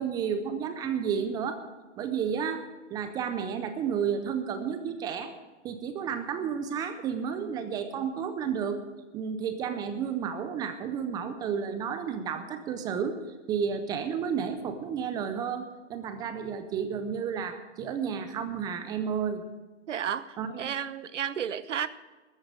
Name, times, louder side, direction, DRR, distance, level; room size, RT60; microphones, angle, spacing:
voice 1, 0.0-1.6 2.0-2.6 2.9-5.3 5.6-8.8 9.1-13.2 13.5-19.5 20.4-20.5, right 7 dB, 10° right, 10 dB, 0.4 m, -31 dB
voice 2, 19.9-21.9, right 8 dB, 85° right, 16 dB, 0.9 m, -32 dB
13.5 x 8.5 x 7.9 m, 1.2 s
hypercardioid pair, 135°, 35 cm